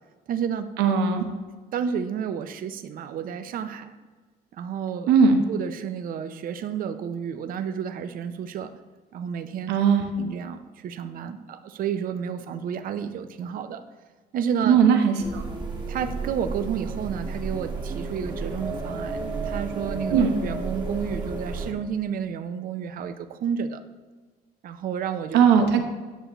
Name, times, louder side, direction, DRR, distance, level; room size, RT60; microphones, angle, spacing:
voice 1, 0.3-0.7 1.7-3.9 4.5-5.1 5.5-8.7 9.1-9.7 10.2-13.8 14.3-14.8 15.9-23.8 24.6-25.4, right 7 dB, 55° right, 9 dB, 0.6 m, -31 dB
voice 2, 0.8-1.2 5.1-5.4 9.7-10.1 14.7-15.4 20.1-20.3 25.3-25.8, right 6 dB, 90° right, 4 dB, 0.9 m, -18 dB
sound 1, 15.2-21.7, right 3 dB, 25° right, 1.1 m, -32 dB
10.0 x 6.6 x 3.0 m, 1.3 s
cardioid pair, 110°, 17 cm